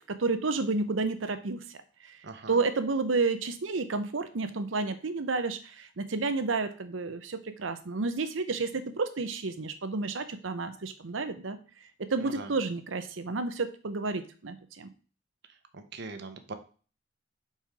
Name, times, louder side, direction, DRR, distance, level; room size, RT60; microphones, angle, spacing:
voice 1, 0.0-1.6 2.5-11.6 12.0-14.9, right 3 dB, 90° right, 10 dB, 0.8 m, -31 dB
voice 2, 2.2-2.6 12.2-12.5 15.7-16.5, right 3 dB, 60° right, 8 dB, 0.9 m, -41 dB
5.6 x 4.4 x 4.8 m, 0.39 s
head